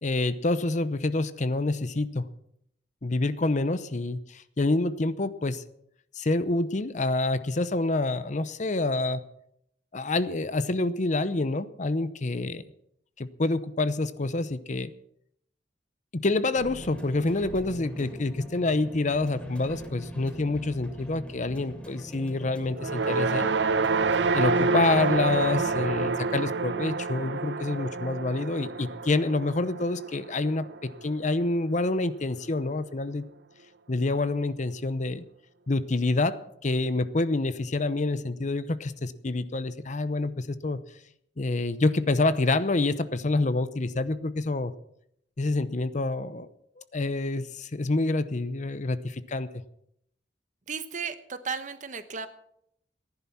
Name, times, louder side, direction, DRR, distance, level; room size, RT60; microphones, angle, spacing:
voice 1, 0.0-2.3 3.0-5.6 6.1-9.2 9.9-12.6 13.2-14.9 16.2-23.6 24.3-33.3 33.9-35.2 35.7-40.8 41.4-44.7 45.4-46.5 46.8-49.5, left 2 dB, 45° left, 14 dB, 0.7 m, -27 dB
sound 1, 16.5-26.1, equal, 5° left, 3.2 m, -42 dB
sound 2, 22.7-31.1, right 4 dB, 80° right, 0.7 m, -28 dB
voice 2, 50.7-52.3, right 5 dB, 45° right, 11 dB, 1.0 m, -34 dB
15.0 x 11.0 x 5.9 m, 0.74 s
head